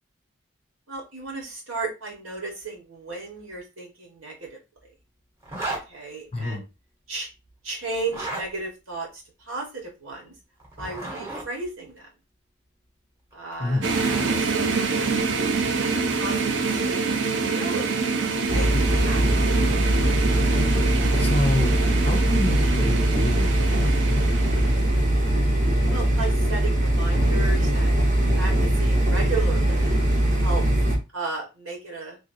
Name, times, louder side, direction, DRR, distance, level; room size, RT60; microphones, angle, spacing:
voice 1, 0.9-4.6 5.9-6.6 7.1-7.3 7.6-10.3 10.8-12.1 13.3-13.8 14.2-15.1 15.4-18.0 18.4-19.4 25.9-28.0 28.3-30.0 30.4-30.6 31.1-32.2, right 3 dB, 80° right, 0 dB, 1.5 m, -34 dB
Zipper (clothing), 5.4-5.8 8.0-8.5 10.6-11.5 13.3-14.4, right 2 dB, 10° right, 0.9 m, -34 dB
voice 2, 6.3-6.6 13.6-13.9 21.1-21.8 22.1-24.3, left 1 dB, 30° left, 5 dB, 0.4 m, -28 dB
sound 1, 13.8-25.1, right 4 dB, 60° right, 0.5 m, -26 dB
sound 2, 18.5-31.0, right 1 dB, 40° right, 0.9 m, -21 dB
3.2 x 2.6 x 2.6 m, 0.27 s
head